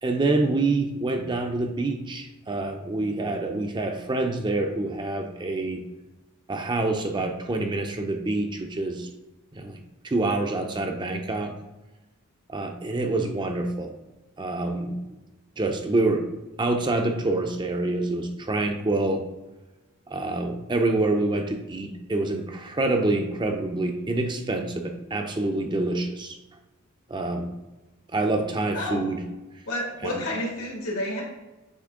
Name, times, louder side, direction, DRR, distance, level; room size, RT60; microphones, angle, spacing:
voice 1, 0.0-5.8 6.5-9.1 9.5-11.5 12.5-13.9 14.4-15.0 15.6-16.3 16.6-19.2 20.1-26.4 27.1-27.5 28.1-29.2 30.0-30.3, right 2 dB, 20° right, 4 dB, 0.5 m, -26 dB
voice 2, 28.7-29.0 29.6-31.2, left 1 dB, 85° left, -2 dB, 2.1 m, -30 dB
8.0 x 3.3 x 3.6 m, 1.1 s
head